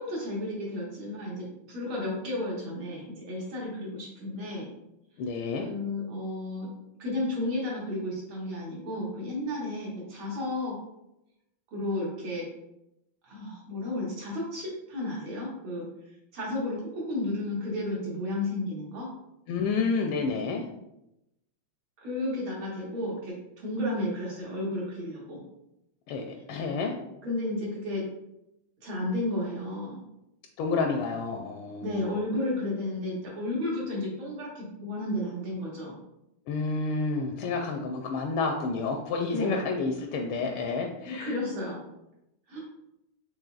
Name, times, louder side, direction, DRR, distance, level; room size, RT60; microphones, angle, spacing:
voice 1, 0.0-4.7 5.6-6.7 7.0-10.8 11.7-12.5 13.3-15.9 16.3-19.1 22.0-25.4 27.2-28.1 28.8-30.0 31.8-36.0 39.3-39.6 41.0-41.8 42.5-42.6, left 1 dB, 70° right, -4 dB, 2.3 m, -32 dB
voice 2, 5.2-5.7 19.5-20.6 26.1-26.9 30.6-32.1 36.5-41.4, left 4 dB, 80° left, 3 dB, 1.4 m, -30 dB
6.5 x 3.5 x 2.3 m, 0.86 s
omnidirectional pair, 2.3 m